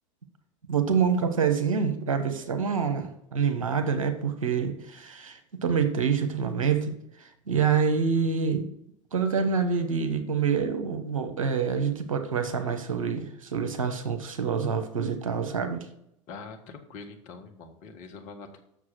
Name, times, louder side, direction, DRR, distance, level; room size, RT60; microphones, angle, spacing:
voice 1, 0.7-8.7 9.1-15.8, right 6 dB, 80° right, 7 dB, 1.1 m, -26 dB
voice 2, 16.3-18.6, left 4 dB, 50° left, 4 dB, 1.6 m, -44 dB
7.3 x 6.5 x 5.8 m, 0.76 s
figure-of-eight pair, 75°, 17 cm